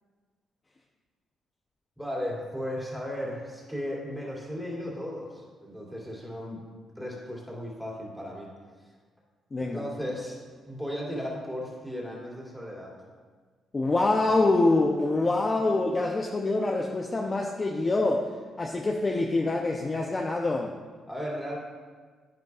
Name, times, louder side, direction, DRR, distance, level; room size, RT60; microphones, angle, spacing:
voice 1, 2.0-6.6 7.0-8.5 9.6-10.4 10.7-13.0 21.1-21.6, equal, ahead, -4 dB, 2.5 m, -35 dB
voice 2, 9.5-9.8 13.7-18.3 18.6-20.8, left 2 dB, 30° left, 1 dB, 0.6 m, -25 dB
10.5 x 9.3 x 2.4 m, 1.5 s
cardioid pair, 90°, 0 cm